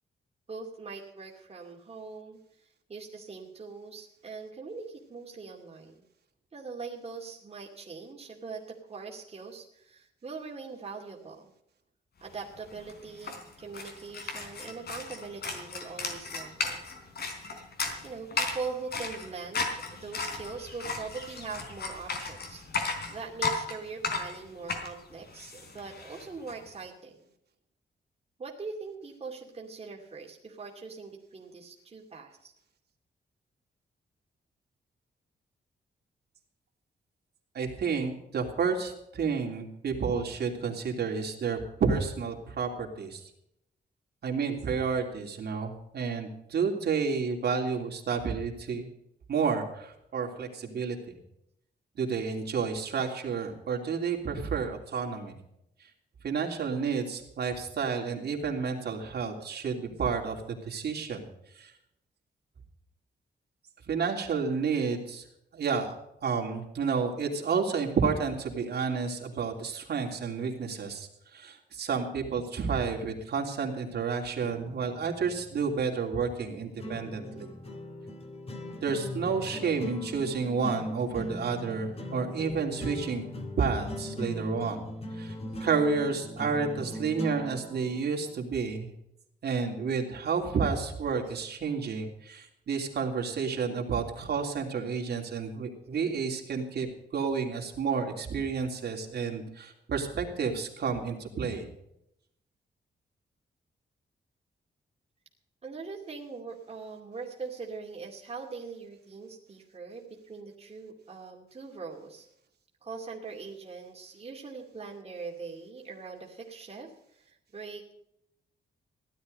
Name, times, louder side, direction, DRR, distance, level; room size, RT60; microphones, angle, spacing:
voice 1, 0.5-6.0 6.5-11.5 12.2-16.8 18.0-27.2 28.4-32.5 105.6-112.3 112.8-117.9, right 4 dB, 35° right, -1 dB, 2.5 m, -42 dB
sound 1, 12.4-12.5 12.7-26.5, left 4 dB, 65° left, 3.9 m, -35 dB
voice 2, 37.5-43.2 44.2-48.9 49.3-51.1 52.0-55.3 56.2-61.3 61.6-61.7 63.9-65.2 65.5-66.0 66.2-77.5 78.8-83.2 83.6-84.8 85.1-85.3 85.6-88.9 89.4-96.9 97.1-101.7, right 5 dB, 65° right, 1 dB, 3.1 m, -30 dB
sound 2, 74.4-88.4, left 1 dB, 35° left, 2.7 m, -40 dB
16.5 x 12.0 x 5.3 m, 0.78 s
wide cardioid pair, 150°, 18 cm